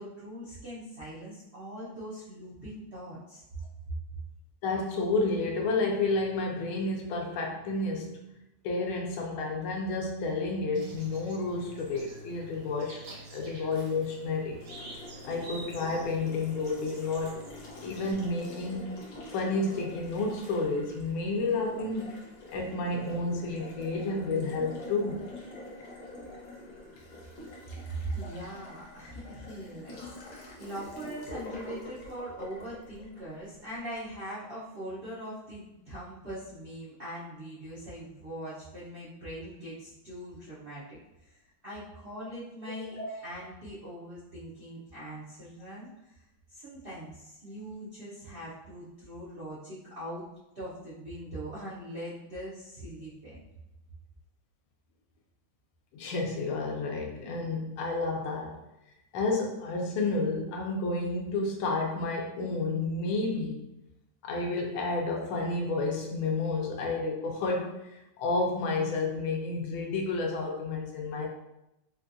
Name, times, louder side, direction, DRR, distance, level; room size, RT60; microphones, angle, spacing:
voice 1, 0.0-3.4 4.1-4.2 27.9-41.0 41.2-46.2 46.5-50.3 50.5-53.4, right 1 dB, 75° right, -10 dB, 0.5 m, -41 dB
voice 2, 4.6-8.2 8.6-13.0 13.3-14.6 15.2-17.4 17.8-19.0 19.3-22.2 22.5-25.3 42.8-43.1 55.9-58.7 59.1-63.7 64.2-71.3, left 3 dB, 85° left, 0 dB, 1.5 m, -31 dB
sound 1, 10.7-18.1, right 1 dB, 55° right, 1.0 m, -48 dB
Water tap faucet, 14.6-33.8, left 2 dB, 55° left, 1.1 m, -46 dB
4.3 x 2.3 x 2.5 m, 0.89 s
omnidirectional pair, 2.3 m